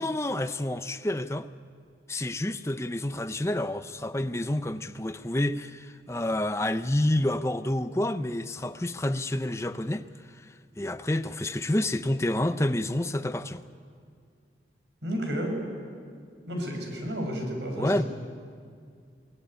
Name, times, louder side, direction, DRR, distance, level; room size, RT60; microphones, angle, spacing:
voice 1, 0.0-1.5 2.1-13.6 17.8-18.0, left 1 dB, 15° left, 0.6 m, -29 dB
voice 2, 15.0-15.6 16.5-18.0, equal, 85° right, 5.9 m, -31 dB
22.0 x 19.0 x 9.9 m
head